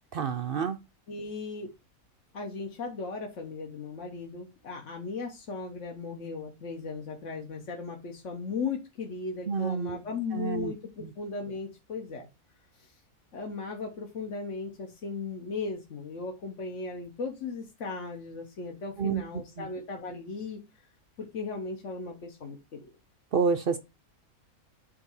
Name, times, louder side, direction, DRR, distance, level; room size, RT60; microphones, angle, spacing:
voice 1, 0.1-0.8 9.5-10.0 10.3-10.7 19.0-19.2 19.6-19.7 23.3-23.8, right 6 dB, 70° right, 0.5 m, -28 dB
voice 2, 1.1-1.7 2.3-12.3 13.3-20.6 21.2-22.8, left 4 dB, 55° left, 1.3 m, -37 dB
7.5 x 2.7 x 5.5 m
omnidirectional pair, 1.6 m